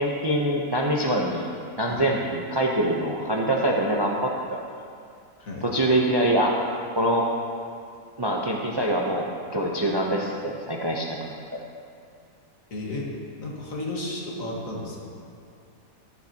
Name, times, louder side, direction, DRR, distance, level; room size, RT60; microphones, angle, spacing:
voice 1, 0.0-1.5 1.8-4.6 5.7-6.5 6.9-7.3 8.2-9.3 9.5-11.3, right 1 dB, 25° right, -1 dB, 0.5 m, -24 dB
voice 2, 12.7-15.2, left 2 dB, 65° left, -2 dB, 2.0 m, -33 dB
15.0 x 10.5 x 2.9 m, 2.4 s
omnidirectional pair, 1.6 m